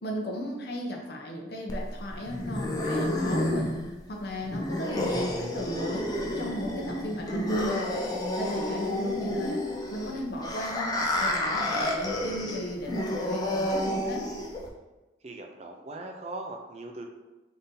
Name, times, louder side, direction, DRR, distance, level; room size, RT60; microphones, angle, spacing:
voice 1, 0.0-3.8 4.1-7.8 8.3-9.7 9.9-14.3, equal, 55° left, 1 dB, 0.7 m, -36 dB
sound 1, 1.7-14.7, left 1 dB, 20° left, 0.5 m, -30 dB
voice 2, 15.2-17.1, right 2 dB, 35° right, 3 dB, 0.4 m, -40 dB
3.9 x 2.7 x 3.8 m, 1.1 s
head